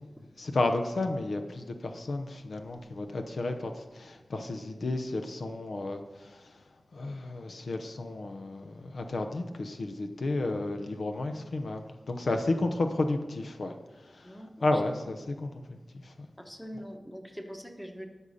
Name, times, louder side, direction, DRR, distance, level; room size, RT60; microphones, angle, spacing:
voice 1, 0.4-6.4 6.9-13.7 14.6-16.3, left 2 dB, 75° left, 6 dB, 0.8 m, -32 dB
voice 2, 14.2-15.0 16.4-18.1, equal, 5° left, 4 dB, 1.1 m, -43 dB
12.5 x 5.5 x 5.0 m, 1.3 s
wide cardioid pair, 85°, 0 cm